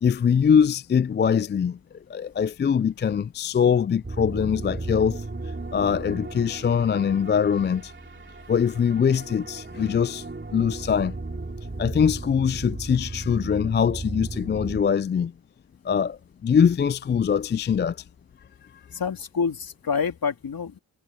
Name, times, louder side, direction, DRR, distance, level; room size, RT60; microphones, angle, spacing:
voice 1, 0.0-1.8 2.1-5.2 5.7-7.9 8.5-10.3 10.5-11.2 11.8-15.3 15.8-18.0, left 7 dB, 30° left, 0.4 m, -22 dB
sound 1, 4.0-14.8, right 3 dB, 25° right, 4.3 m, -36 dB
voice 2, 18.9-20.8, left 6 dB, 60° left, 3.1 m, -27 dB
cardioid pair, 55°, 40 cm